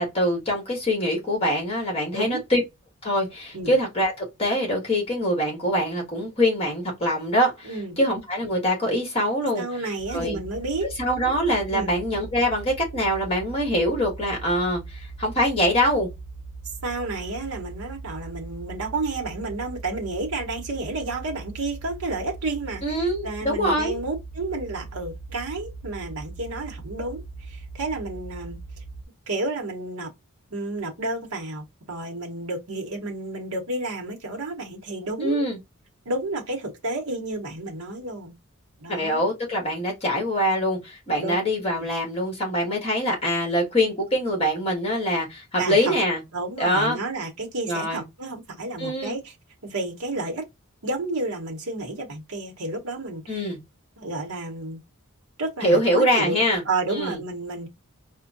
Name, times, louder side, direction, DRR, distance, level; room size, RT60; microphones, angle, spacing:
voice 1, 0.0-2.6 3.0-9.6 10.1-10.4 11.0-16.1 22.8-24.0 35.2-35.6 38.9-46.2 46.6-47.0 47.7-48.0 48.8-49.1 53.3-53.6 55.6-56.6 56.9-57.2, equal, 25° left, 1.6 m, -24 dB
voice 2, 2.1-2.4 3.5-3.7 7.6-8.0 9.6-10.9 11.7-12.0 16.6-28.8 29.3-30.1 30.5-35.5 36.0-38.3 38.8-39.2 41.2-41.4 41.7-41.9 45.6-45.9 46.3-49.3 49.6-50.5 50.8-53.5 54.0-54.8 55.4-57.7, right 2 dB, 80° right, 0.9 m, -31 dB
sound 1, 10.0-29.0, right 3 dB, 45° left, 0.8 m, -40 dB
4.4 x 2.1 x 2.5 m
head